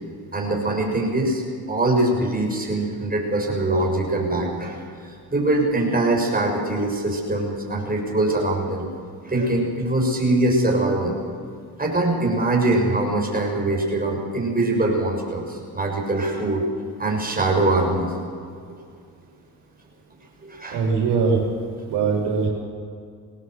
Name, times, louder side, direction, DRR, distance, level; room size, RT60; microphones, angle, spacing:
voice 1, 0.3-1.4 1.7-8.9 9.2-11.2 11.8-16.6 17.0-18.1 20.4-20.8, right 2 dB, 20° right, 0 dB, 6.8 m, -23 dB
voice 2, 20.7-21.4 21.8-22.5, right 5 dB, 85° right, -1 dB, 4.3 m, -21 dB
19.5 x 18.0 x 8.0 m, 2.3 s
supercardioid pair, 65°, 39 cm